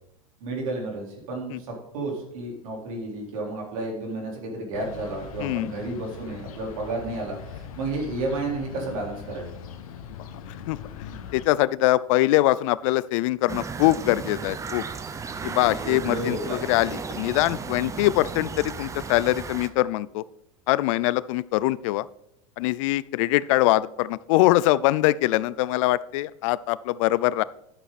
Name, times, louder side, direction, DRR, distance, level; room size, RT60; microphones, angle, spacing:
voice 1, 0.4-9.6 15.7-16.6, right 2 dB, 75° right, 0 dB, 4.1 m, -32 dB
sound 1, 4.7-11.5, left 7 dB, 85° left, 1.3 m, -41 dB
voice 2, 5.4-5.7 10.7-14.8 15.4-20.2 20.7-22.1 22.6-27.4, left 17 dB, 65° left, 19 dB, 0.5 m, -23 dB
sound 2, 13.5-19.7, right 5 dB, 15° right, 0.7 m, -35 dB
11.0 x 7.9 x 4.2 m, 0.79 s
supercardioid pair, 120°, 18 cm